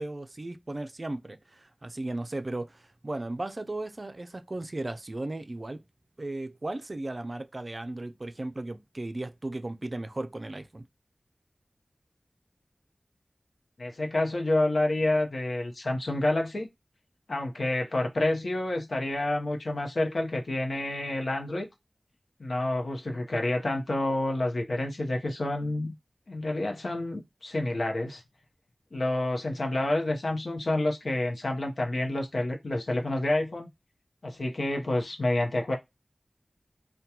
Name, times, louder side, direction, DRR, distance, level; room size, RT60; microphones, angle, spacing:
voice 1, 0.0-5.8 6.2-10.8, right 2 dB, 45° right, 0.4 m, -36 dB
voice 2, 13.8-16.7 17.3-21.7 22.4-25.9 26.3-28.2 28.9-33.7 34.2-35.8, left 1 dB, 80° left, 0.7 m, -28 dB
2.8 x 2.2 x 2.2 m
wide cardioid pair, 60°, 0 cm